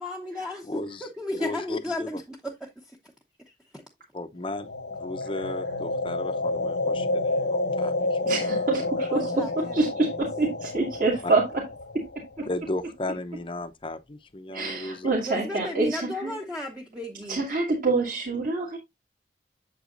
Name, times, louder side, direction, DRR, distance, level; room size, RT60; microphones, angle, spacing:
voice 1, 0.0-0.7 1.0-3.0 3.7-3.8 9.1-9.5 12.4-12.5 15.2-17.4, left 1 dB, 5° right, 0.8 m, -33 dB
voice 2, 0.6-1.1 1.4-2.1 4.1-4.7 5.0-8.6 12.5-15.1, left 2 dB, 30° left, 0.7 m, -35 dB
sound 1, 4.5-12.6, left 2 dB, 80° left, 1.2 m, -29 dB
voice 3, 8.3-11.7 14.5-16.4 17.3-18.8, right 3 dB, 50° right, 2.1 m, -26 dB
8.0 x 7.4 x 2.5 m
head